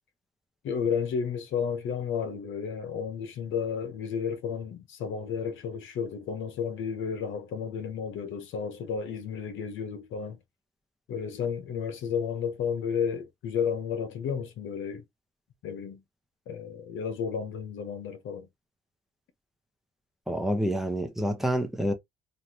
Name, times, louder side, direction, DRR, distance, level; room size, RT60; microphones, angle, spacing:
voice 1, 0.6-10.4 11.1-15.0 15.6-16.0 16.5-18.5, left 7 dB, 75° left, 0.8 m, -32 dB
voice 2, 20.3-21.9, equal, ahead, 0.8 m, -28 dB
3.2 x 2.4 x 2.8 m
cardioid pair, 90°, 20 cm